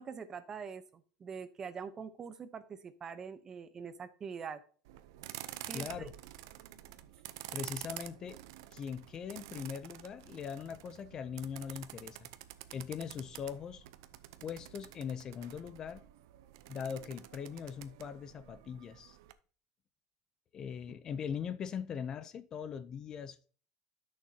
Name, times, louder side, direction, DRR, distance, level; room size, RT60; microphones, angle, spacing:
voice 1, 0.0-4.6 5.7-6.1, right 6 dB, 25° right, 0.9 m, -44 dB
sound 1, 4.8-19.3, right 14 dB, 85° right, 0.6 m, -49 dB
voice 2, 5.7-6.1 7.5-8.4 8.7-12.3 12.7-13.8 14.4-16.0 16.7-19.2 20.5-23.5, left 7 dB, 35° left, 0.5 m, -41 dB
11.5 x 6.5 x 2.8 m
supercardioid pair, 135°, 2 cm